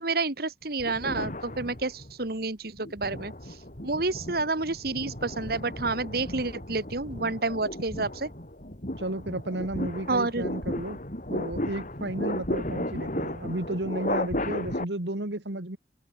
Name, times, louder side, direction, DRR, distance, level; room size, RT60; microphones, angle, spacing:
voice 1, 0.0-3.6 3.8-8.3 10.1-10.4, right 3 dB, 60° right, 2.2 m, -29 dB
sound 1, 0.8-2.2 2.8-14.8, left 1 dB, 45° left, 6.5 m, -34 dB
voice 2, 9.0-11.0 11.3-15.8, right 1 dB, 80° right, 2.3 m, -33 dB
head